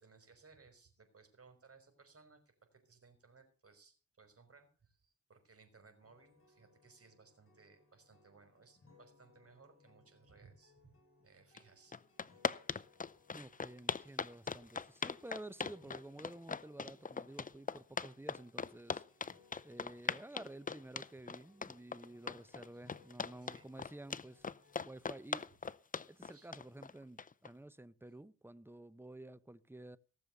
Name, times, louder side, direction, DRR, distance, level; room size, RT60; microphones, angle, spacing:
voice 1, 0.0-11.0 11.2-12.0 22.7-22.9 23.4-23.7 26.3-26.5, right 4 dB, 45° right, 5.5 m, -63 dB
sound 1, 6.0-24.9, left 3 dB, 40° left, 4.9 m, -68 dB
sound 2, 11.6-11.7 11.9-27.5, left 5 dB, 25° left, 0.6 m, -40 dB
voice 2, 13.3-19.0 19.6-24.5 24.8-25.5 26.1-30.0, right 1 dB, 5° right, 0.8 m, -52 dB
18.0 x 7.0 x 6.7 m
cardioid pair, 65°, 31 cm